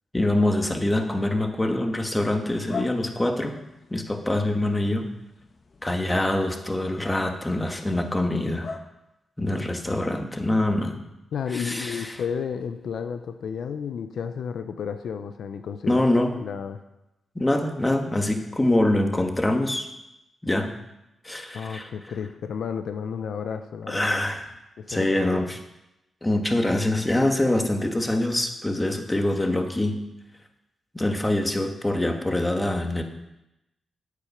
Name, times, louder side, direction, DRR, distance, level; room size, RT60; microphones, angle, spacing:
voice 1, 0.1-3.6 3.9-5.1 5.8-8.7 9.4-11.0 11.5-12.1 15.9-16.3 17.3-19.9 20.4-20.7 21.2-21.9 23.9-24.4 24.9-25.6 26.2-30.0 30.9-33.0, left 1 dB, 15° left, 5 dB, 1.6 m, -24 dB
sound 1, 2.7-8.8, left 4 dB, 55° left, 1.1 m, -43 dB
voice 2, 11.3-16.8 21.5-24.2 24.8-25.6, left 7 dB, 80° left, 9 dB, 0.6 m, -32 dB
8.5 x 8.4 x 5.7 m, 0.92 s
cardioid pair, 55°, 0 cm